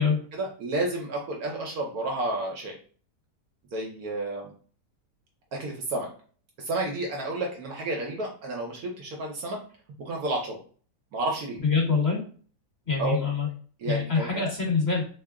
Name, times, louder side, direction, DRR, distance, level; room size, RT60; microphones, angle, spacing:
voice 1, 0.4-2.8 3.7-4.5 5.5-6.1 6.6-9.6 10.0-10.6 11.1-11.6 13.0-13.2 13.8-14.5, right 2 dB, 65° right, 0 dB, 1.2 m, -31 dB
voice 2, 11.6-12.2 12.8-13.5 13.8-15.0, left 5 dB, 40° left, -4 dB, 1.6 m, -25 dB
3.5 x 2.1 x 3.5 m, 0.41 s
omnidirectional pair, 1.8 m